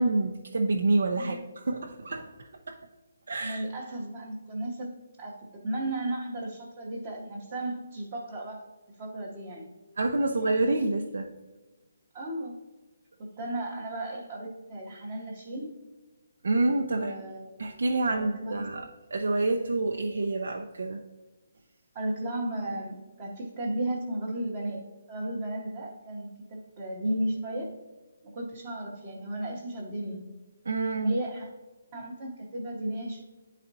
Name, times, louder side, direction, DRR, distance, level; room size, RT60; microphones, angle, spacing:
voice 1, 0.0-2.3 2.7-2.8 3.3-3.6 10.0-11.3 16.4-17.1 17.6-18.9 19.1-21.0 30.7-31.2, right 2 dB, 70° right, 3 dB, 0.6 m, -27 dB
voice 2, 3.4-5.3 5.6-8.6 9.0-9.7 12.1-12.5 13.2-15.7 16.9-17.7 18.1-18.7 21.9-24.8 25.1-27.7 28.3-30.4 31.0-31.5 31.9-33.2, right 1 dB, 15° right, -6 dB, 0.8 m, -34 dB
11.0 x 4.1 x 2.7 m, 1.2 s
hypercardioid pair, 175°, 0 cm